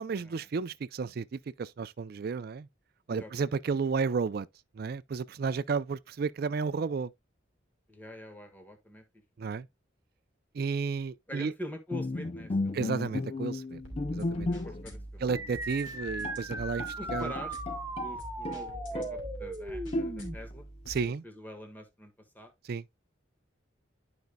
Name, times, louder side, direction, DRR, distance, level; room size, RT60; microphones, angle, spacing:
voice 1, 0.0-2.7 3.1-4.5 4.8-7.1 9.4-9.7 10.5-11.5 12.7-13.8 14.1-14.5 15.2-17.3 20.9-21.2 22.7-22.8, right 5 dB, 50° right, 0.4 m, -32 dB
voice 2, 3.1-3.6 7.9-9.0 9.4-9.6 11.3-12.8 14.5-15.2 17.0-17.6 18.0-20.7 21.2-22.5, equal, 10° left, 1.5 m, -45 dB
Bowed string instrument, 11.9-15.0 15.3-15.5 15.9-16.0 16.2-18.1 18.4-19.3 19.9-20.5, left 2 dB, 30° left, 0.4 m, -34 dB
sound 1, 13.8-21.0, right 1 dB, 85° left, 2.7 m, -45 dB
sound 2, 15.3-20.3, right 2 dB, 15° right, 0.8 m, -38 dB
11.5 x 5.2 x 2.2 m
head